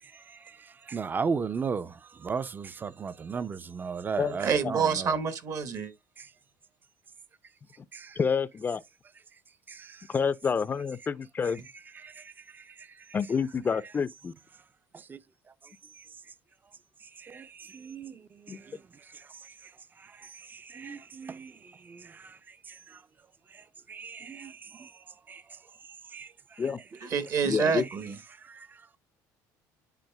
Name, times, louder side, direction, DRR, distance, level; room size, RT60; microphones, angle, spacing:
voice 1, 0.9-1.9 2.2-5.1 7.9-8.1 9.7-10.0 12.0-12.2 15.1-15.2 17.2-18.2 18.5-18.6 20.5-21.5 21.9-22.3 23.9-24.9 25.3-25.4 26.1-26.3 28.5-28.7, right 5 dB, 25° right, 0.5 m, -35 dB
voice 2, 4.4-5.9 27.0-28.1, right 6 dB, 50° right, 1.3 m, -27 dB
voice 3, 8.2-8.8 10.1-11.6 13.1-14.3 18.5-18.6 26.6-26.8 27.4-27.8, left 6 dB, 25° left, 0.5 m, -28 dB
10.5 x 4.0 x 2.2 m
cardioid pair, 110°, 7 cm